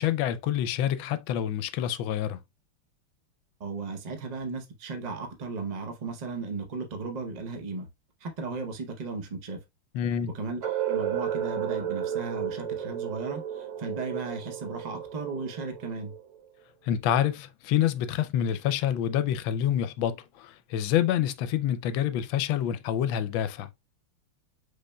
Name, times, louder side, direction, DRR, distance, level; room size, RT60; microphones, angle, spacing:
voice 1, 0.0-2.4 9.9-10.3 16.8-23.7, left 10 dB, 80° left, 1.3 m, -27 dB
voice 2, 3.6-7.9 8.2-9.6 10.3-16.1, right 4 dB, 85° right, 0.3 m, -35 dB
sound 1, 10.6-16.5, right 9 dB, 55° right, 0.9 m, -33 dB
5.3 x 4.0 x 2.2 m
omnidirectional pair, 2.2 m